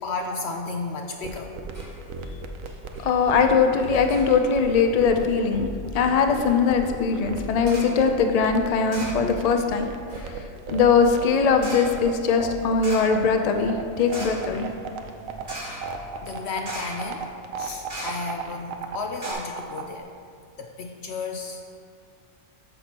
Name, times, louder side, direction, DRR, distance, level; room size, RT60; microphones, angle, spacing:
voice 1, 0.0-1.5 10.5-10.6 16.2-17.2 17.6-20.1 20.6-21.7, left 3 dB, 65° left, 3 dB, 0.8 m, -33 dB
sound 1, 1.1-1.4 1.7-1.9 2.2-2.3 2.7-3.1 3.9-4.3 5.0-5.4 5.9-6.0 6.3-6.6 7.6-8.0 8.9-9.6 9.8-18.6 18.9-19.0 19.2-19.3, equal, 30° right, 2.2 m, -41 dB
sound 2, 1.2-20.0, right 5 dB, 80° right, 1.1 m, -34 dB
voice 2, 3.0-5.7 5.9-9.9 10.7-14.7, left 5 dB, 85° left, 5 dB, 0.3 m, -21 dB
13.5 x 6.0 x 2.9 m, 2.3 s
omnidirectional pair, 1.4 m